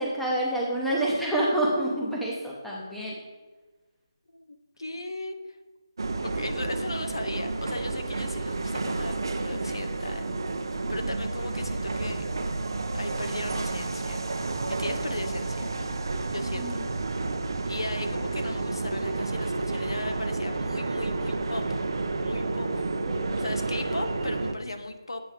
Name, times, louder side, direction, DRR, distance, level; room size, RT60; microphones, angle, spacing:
voice 1, 0.0-3.2 16.5-16.9 23.1-23.4, right 1 dB, ahead, -5 dB, 0.8 m, -28 dB
voice 2, 4.8-5.4 6.2-10.3 10.9-12.2 12.9-14.3 14.7-15.7 16.3-16.8 17.6-21.6 22.2-22.9 23.3-25.2, left 2 dB, 80° left, 7 dB, 0.7 m, -36 dB
sound 1, 6.0-24.5, right 3 dB, 60° right, 0.6 m, -30 dB
8.2 x 3.1 x 4.9 m, 1.2 s
figure-of-eight pair, 160°, 3 cm